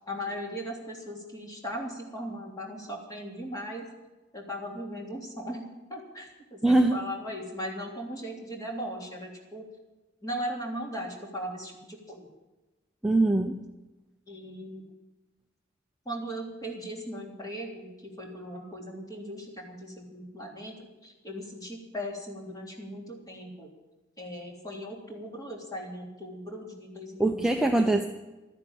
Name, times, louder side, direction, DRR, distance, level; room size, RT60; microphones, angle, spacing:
voice 1, 0.1-3.9 4.3-9.7 10.2-12.3 14.3-14.8 16.0-23.7 24.2-27.3 27.6-27.9, equal, 20° left, 0 dB, 3.3 m, -38 dB
voice 2, 6.6-7.0 13.0-13.5 27.2-28.1, right 2 dB, 5° right, 4 dB, 0.7 m, -22 dB
13.0 x 10.5 x 8.9 m, 1.1 s
head